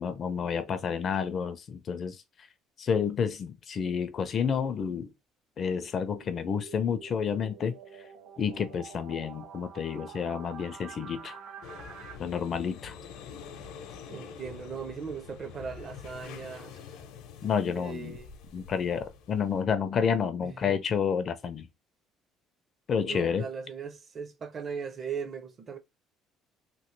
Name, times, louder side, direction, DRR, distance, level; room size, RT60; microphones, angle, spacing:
voice 1, 0.0-2.2 2.8-5.1 5.6-7.8 8.4-11.4 12.2-13.0 17.4-18.2 18.5-21.7 22.9-23.5, left 7 dB, 30° left, 0.4 m, -30 dB
sound 1, 5.6-12.2, right 6 dB, 65° right, 1.2 m, -47 dB
sound 2, 11.6-19.6, left 6 dB, 75° left, 0.7 m, -46 dB
voice 2, 14.1-16.8 17.7-18.3 20.4-20.8 23.0-25.8, right 6 dB, 30° right, 0.5 m, -38 dB
3.0 x 2.8 x 3.1 m
cardioid pair, 170°, 0 cm